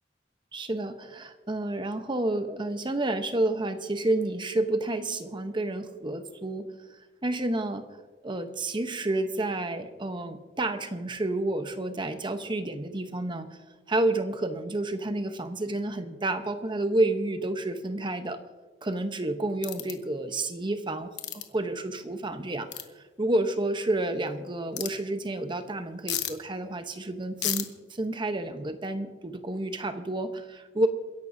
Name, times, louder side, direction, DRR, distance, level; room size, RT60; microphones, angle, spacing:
voice 1, 0.5-6.7 7.2-7.8 8.2-13.5 13.9-18.4 18.8-22.7 23.2-30.9, right 2 dB, 25° right, 8 dB, 0.9 m, -30 dB
sound 1, 19.6-19.9 21.2-21.4 22.7-22.8 24.8-24.9 26.1-26.3 27.4-27.6, left 11 dB, 65° left, 1.1 m, -31 dB
28.5 x 11.0 x 2.7 m, 1.4 s
head